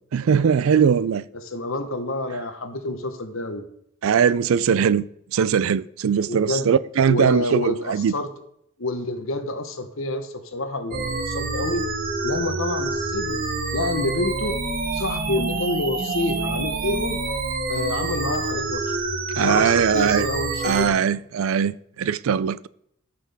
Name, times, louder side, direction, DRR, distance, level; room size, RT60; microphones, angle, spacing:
voice 1, 0.1-1.2 4.0-5.1 5.3-8.1 19.4-20.2 20.6-22.7, right 7 dB, 70° right, 0.4 m, -20 dB
voice 2, 1.3-3.6 6.3-6.7 7.1-8.3 8.8-11.9 12.2-13.4 13.7-14.6 14.9-17.2 17.7-18.8 19.4-21.1, left 2 dB, 65° left, 1.1 m, -28 dB
sound 1, 10.9-20.9, right 3 dB, 40° right, 1.0 m, -27 dB
13.5 x 5.9 x 3.5 m
head